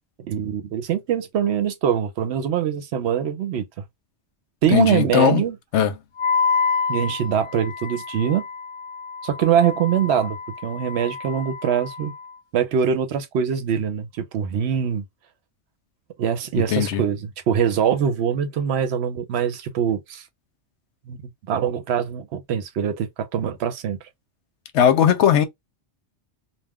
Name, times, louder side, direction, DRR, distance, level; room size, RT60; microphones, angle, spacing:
voice 1, 0.3-3.8 4.6-5.6 6.9-8.4 9.2-12.1 12.5-15.0 16.2-20.2 21.1-21.2 21.5-24.0, right 8 dB, 70° right, 0.8 m, -23 dB
voice 2, 4.7-5.4 5.7-6.0 16.5-17.0 24.7-25.4, left 9 dB, 80° left, 0.9 m, -18 dB
Wind instrument woodwind instrument, 6.2-12.3, left 5 dB, 50° left, 0.8 m, -28 dB
2.3 x 2.2 x 3.4 m
omnidirectional pair, 1.2 m